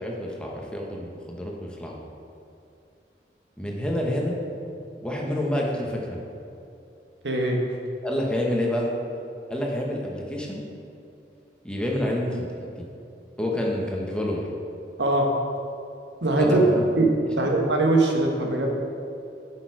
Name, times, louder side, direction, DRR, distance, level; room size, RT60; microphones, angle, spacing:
voice 1, 0.0-2.0 3.6-4.4 5.0-6.2 8.0-8.9 9.5-10.6 11.6-12.9 13.4-14.4 16.4-16.9 17.4-17.5, left 1 dB, 5° left, -2 dB, 1.1 m, -28 dB
voice 2, 7.2-7.6 15.0-15.3 16.2-16.6 16.9-17.1 17.4-18.7, right 2 dB, 85° right, 1 dB, 1.4 m, -21 dB
10.5 x 6.4 x 4.7 m, 2.6 s
head